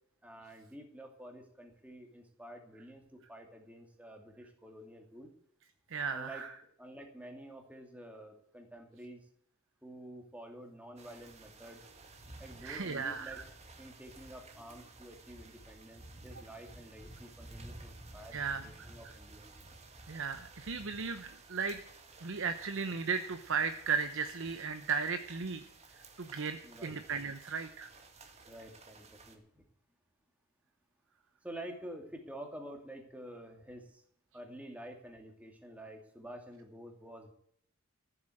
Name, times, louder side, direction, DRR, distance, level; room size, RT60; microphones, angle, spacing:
voice 1, 0.2-5.3 6.1-6.5 6.8-9.3 9.8-11.8 12.4-13.4 13.8-19.5 26.6-27.0 28.4-29.6 31.4-34.0 34.3-37.3, right 1 dB, 5° right, 3 dB, 2.4 m, -49 dB
voice 2, 5.9-6.5 12.6-13.4 18.3-18.6 20.1-21.8 22.2-25.6 26.2-27.9, right 5 dB, 60° right, 9 dB, 0.8 m, -35 dB
sound 1, 11.0-29.4, right 2 dB, 30° right, 1.8 m, -54 dB
14.0 x 7.9 x 7.8 m, 0.68 s
head